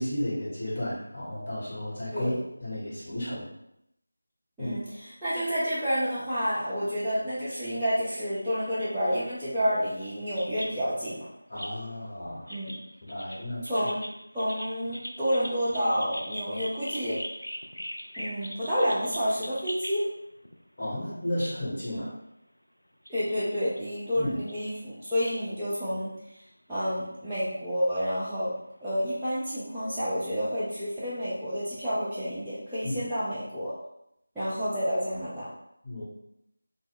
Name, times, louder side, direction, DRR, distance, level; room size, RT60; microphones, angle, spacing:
voice 1, 0.0-2.3 2.6-3.5 4.6-4.8 11.5-12.5 13.1-13.7 20.8-22.1 24.2-24.4 32.8-33.1 35.8-36.0, left 1 dB, 40° left, -8 dB, 1.1 m, -33 dB
voice 2, 4.6-11.3 12.5-12.8 13.6-14.0 14.3-17.2 18.2-20.1 21.9-22.1 23.1-26.1 26.7-28.6 28.8-33.7 34.4-35.5, equal, ahead, -19 dB, 0.4 m, -29 dB
sound 1, 10.4-11.1 11.6-12.1 12.5-20.0 20.4-20.6 21.8-21.9 23.1-23.3 23.8-23.9 24.5-24.7 25.3-25.4 26.1-26.2 27.5-27.6 28.9-29.0, equal, 85° left, 0.4 m, -40 dB
2.1 x 2.1 x 3.6 m, 0.79 s
figure-of-eight pair, 165°, 0 cm